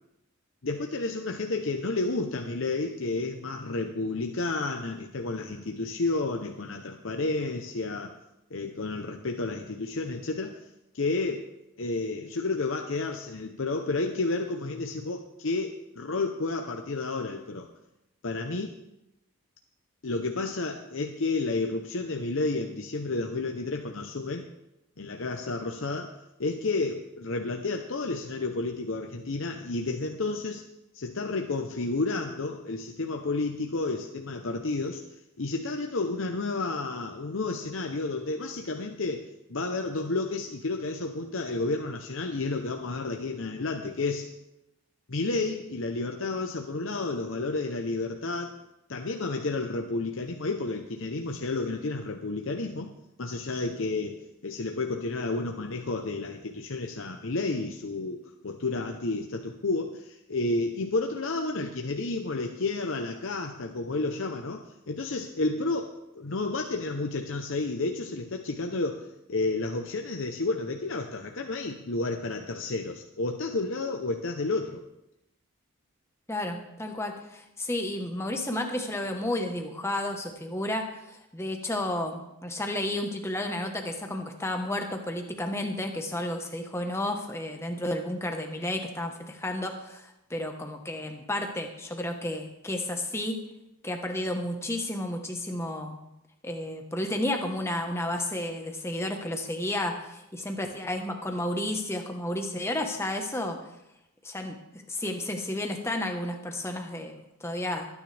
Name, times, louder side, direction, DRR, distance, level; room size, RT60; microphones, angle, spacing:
voice 1, 0.6-8.1 8.5-10.6 10.9-11.5 11.8-17.7 18.2-18.7 20.0-24.5 25.0-26.1 26.4-30.6 30.9-35.0 35.4-44.3 45.1-48.6 48.9-52.9 53.2-74.8, left 3 dB, 60° left, 3 dB, 0.8 m, -31 dB
voice 2, 76.3-93.4 93.8-96.0 96.4-103.6 104.2-104.6 104.9-107.9, left 1 dB, 10° left, 3 dB, 1.2 m, -32 dB
22.0 x 9.7 x 3.4 m, 0.87 s
head